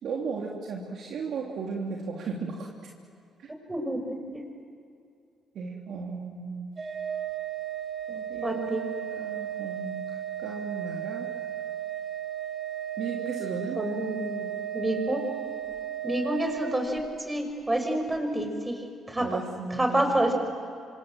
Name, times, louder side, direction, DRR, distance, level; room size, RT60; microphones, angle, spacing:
voice 1, 0.0-2.7 3.4-3.5 5.5-6.7 8.1-11.4 13.0-13.8 19.2-20.2, right 5 dB, 70° right, -2 dB, 3.3 m, -35 dB
voice 2, 3.7-4.4 8.4-8.8 13.8-14.5 14.7-15.2 16.0-18.8 19.1-19.3 19.8-20.3, right 1 dB, 15° right, 5 dB, 5.8 m, -28 dB
Organ, 6.8-17.4, right 10 dB, 35° right, 3.4 m, -35 dB
26.5 x 26.5 x 7.8 m, 2.4 s
cardioid pair, 90°, 0 cm